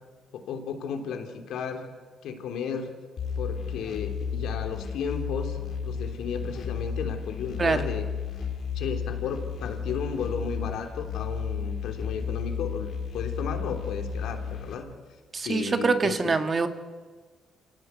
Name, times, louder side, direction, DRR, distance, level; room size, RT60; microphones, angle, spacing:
voice 1, 0.3-1.9 2.2-2.9 3.4-8.1 8.7-12.9 13.1-14.9 15.4-16.4, left 6 dB, 80° left, 5 dB, 3.2 m, -34 dB
sound 1, 3.2-14.7, left 6 dB, 60° left, 3.9 m, -33 dB
voice 2, 15.3-16.7, right 4 dB, 35° right, 8 dB, 1.8 m, -24 dB
27.5 x 18.0 x 8.3 m, 1.4 s
cardioid pair, 90°, 0 cm